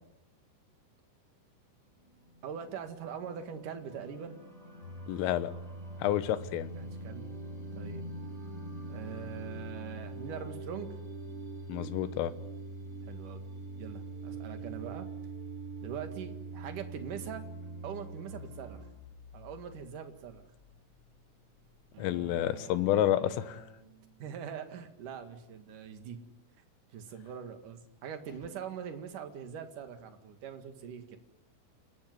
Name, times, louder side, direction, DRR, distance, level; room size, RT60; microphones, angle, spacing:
sound 1, 1.9-18.9, right 3 dB, 10° right, 4.7 m, -47 dB
voice 1, 2.4-4.4 6.7-7.3 7.7-8.1 8.9-11.0 13.0-13.4 13.8-15.1 15.8-17.5 17.8-18.8 19.3-20.4 24.2-26.2 26.9-31.2, right 8 dB, 50° right, 7 dB, 2.9 m, -42 dB
Domestic sounds home sounds, 4.8-21.7, right 1 dB, 25° left, 4.8 m, -45 dB
voice 2, 5.1-5.5 6.0-6.7 11.7-12.3 22.0-23.6, left 12 dB, 90° left, 13 dB, 3.8 m, -29 dB
sound 2, 21.9-24.5, right 4 dB, 85° right, 4.5 m, -52 dB
28.5 x 17.5 x 9.7 m, 0.85 s
omnidirectional pair, 5.7 m